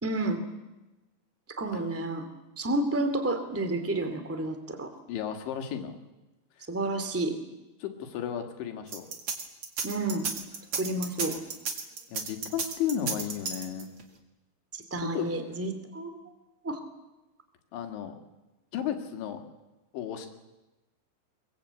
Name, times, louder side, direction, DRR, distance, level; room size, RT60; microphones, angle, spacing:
voice 1, 0.0-0.4 1.6-2.2 2.6-4.9 6.7-7.4 9.8-10.3 10.7-11.4 14.7-16.2 16.6-16.8, right 2 dB, 10° right, 8 dB, 0.6 m, -30 dB
voice 2, 5.1-6.0 7.8-9.1 12.1-13.9 15.0-15.3 17.7-18.2 18.7-19.4 19.9-20.3, left 9 dB, 80° left, 5 dB, 4.3 m, -33 dB
sound 1, 8.9-14.0, right 5 dB, 40° right, 2.0 m, -33 dB
23.0 x 22.5 x 8.3 m, 1.0 s
omnidirectional pair, 5.2 m